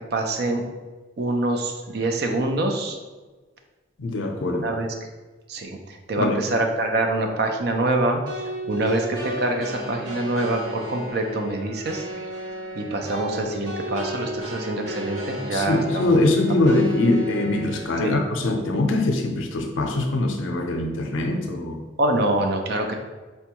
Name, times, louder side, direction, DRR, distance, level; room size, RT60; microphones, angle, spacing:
voice 1, 0.1-0.6 1.2-3.0 4.4-4.9 5.5-12.2 12.7-16.2 18.0-18.2 22.0-22.9, right 2 dB, 55° right, 4 dB, 0.4 m, -25 dB
voice 2, 4.0-4.7 6.2-6.3 15.5-21.8, left 2 dB, 90° left, 4 dB, 0.5 m, -22 dB
sound 1, 8.3-17.9, equal, 85° right, 0.9 m, -34 dB
4.3 x 2.2 x 2.9 m, 1.3 s
head